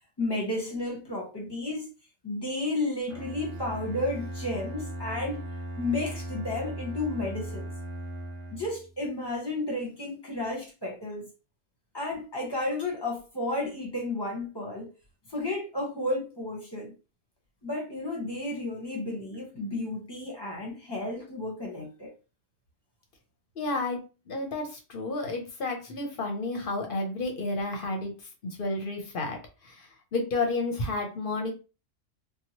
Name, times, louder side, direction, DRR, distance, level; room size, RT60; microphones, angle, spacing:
voice 1, 0.2-1.9 2.2-5.4 5.8-7.6 8.5-11.3 11.9-14.9 15.3-16.9 17.6-22.1, left 2 dB, 20° left, 0.9 m, -32 dB
Bowed string instrument, 3.1-9.0, right 1 dB, 30° right, 0.8 m, -38 dB
voice 2, 23.6-24.0 24.3-28.1 28.4-31.5, left 2 dB, 55° left, 0.7 m, -31 dB
2.9 x 2.2 x 2.8 m
omnidirectional pair, 1.3 m